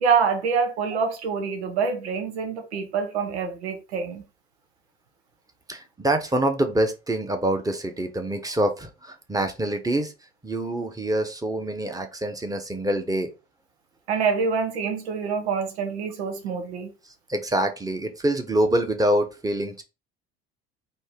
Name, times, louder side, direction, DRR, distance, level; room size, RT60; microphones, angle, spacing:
voice 1, 0.0-4.2 14.1-16.9, right 5 dB, 90° right, 0.8 m, -26 dB
voice 2, 5.7-10.1 10.4-13.3 17.3-19.8, right 1 dB, 10° right, 1.0 m, -25 dB
4.2 x 2.8 x 3.6 m
hypercardioid pair, 65°, 32 cm